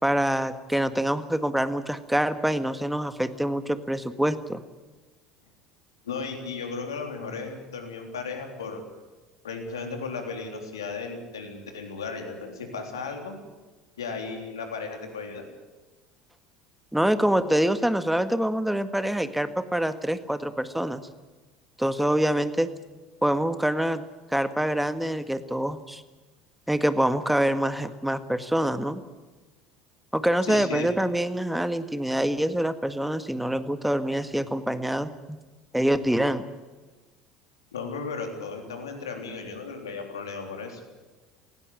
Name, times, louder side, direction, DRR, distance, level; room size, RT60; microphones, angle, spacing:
voice 1, 0.0-4.6 16.9-21.0 21.8-22.7 23.2-24.0 24.3-26.0 26.7-29.0 30.1-35.4 35.7-36.5, right 1 dB, 5° right, 11 dB, 1.7 m, -25 dB
voice 2, 6.0-8.9 9.4-13.3 14.0-15.4 30.5-30.9 37.7-40.8, left 4 dB, 85° left, 4 dB, 3.5 m, -35 dB
19.5 x 16.5 x 9.8 m, 1.2 s
hypercardioid pair, 70°, 2 cm